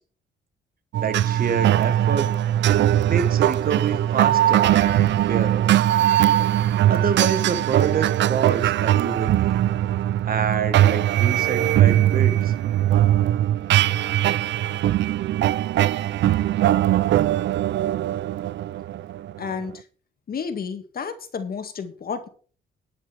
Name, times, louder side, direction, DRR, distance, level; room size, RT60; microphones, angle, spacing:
sound 1, 0.9-19.7, right 12 dB, 65° right, 0.5 m, -20 dB
voice 1, 1.0-2.3 3.0-5.7 6.9-9.6 10.2-12.5, right 6 dB, 45° right, 1.4 m, -27 dB
voice 2, 19.4-19.7 20.3-22.3, left 6 dB, 50° left, 2.0 m, -31 dB
11.0 x 6.8 x 6.1 m
cardioid pair, 90°, 20 cm